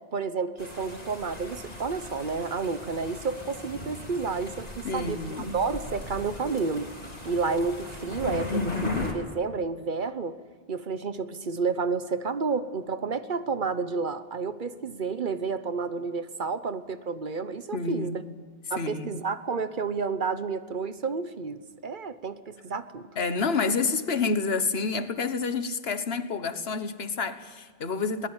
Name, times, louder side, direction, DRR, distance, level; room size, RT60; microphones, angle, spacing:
voice 1, 0.1-6.9 7.2-10.4 10.7-18.2 18.7-23.1, right 4 dB, 55° right, 12 dB, 1.1 m, -30 dB
sound 1, 0.6-9.1, left 2 dB, 40° left, 3.6 m, -38 dB
voice 2, 4.8-5.6 8.5-9.1 17.7-18.4 18.8-19.2 23.2-28.3, left 4 dB, 80° left, 11 dB, 1.5 m, -29 dB
21.5 x 19.5 x 8.9 m, 1.5 s
omnidirectional pair, 1.0 m